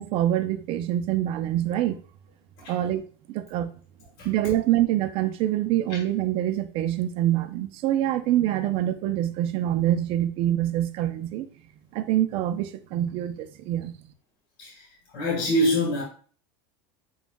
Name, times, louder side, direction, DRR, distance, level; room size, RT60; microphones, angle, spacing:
voice 1, 0.0-2.0 2.7-3.7 4.2-11.5 11.9-13.9, right 12 dB, 50° right, 0.5 m, -25 dB
voice 2, 14.6-16.0, equal, 60° left, 1.4 m, -25 dB
7.1 x 2.4 x 2.2 m
supercardioid pair, 120°, 12 cm